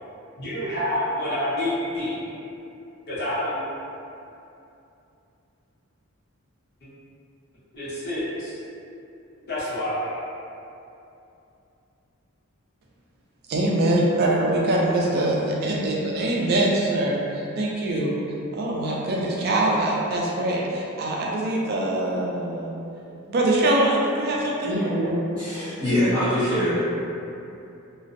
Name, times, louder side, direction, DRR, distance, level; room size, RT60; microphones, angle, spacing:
voice 1, 0.4-2.2 3.1-3.6 7.7-8.5 9.5-10.2, left 1 dB, 50° left, -11 dB, 0.8 m, -27 dB
voice 2, 13.5-18.2 18.5-22.7 23.3-24.7, right 1 dB, 45° right, -3 dB, 0.4 m, -23 dB
voice 3, 24.6-26.8, equal, 20° left, -14 dB, 0.5 m, -24 dB
2.5 x 2.0 x 2.5 m, 2.7 s
head